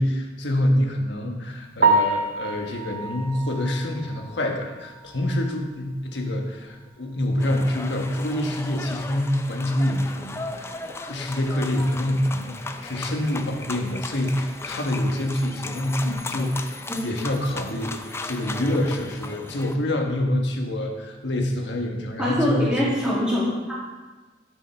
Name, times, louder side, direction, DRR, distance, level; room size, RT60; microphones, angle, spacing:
voice 1, 0.0-22.9, left 1 dB, 80° left, 2 dB, 1.3 m, -26 dB
Piano, 1.8-5.8 6.1-6.3 6.7-6.8 7.2-7.3 10.4-10.5 19.0-19.2, right 3 dB, 50° right, 0.7 m, -26 dB
sound 1, 7.4-19.8, left 3 dB, 15° left, 0.4 m, -36 dB
voice 2, 22.2-23.7, equal, 5° right, -8 dB, 2.0 m, -23 dB
12.0 x 5.4 x 4.4 m, 1.2 s
head